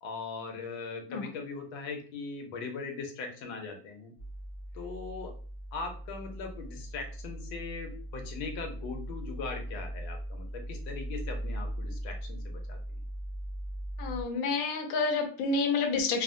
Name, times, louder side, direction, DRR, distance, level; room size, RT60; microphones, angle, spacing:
voice 1, 0.0-4.1 4.7-5.3 5.7-12.8, left 4 dB, 90° left, 3 dB, 1.5 m, -40 dB
sound 1, 4.2-14.2, right 1 dB, 45° left, 0.5 m, -39 dB
voice 2, 14.0-16.2, left 4 dB, 65° left, 2 dB, 0.9 m, -29 dB
3.6 x 2.1 x 2.5 m, 0.43 s
omnidirectional pair, 2.2 m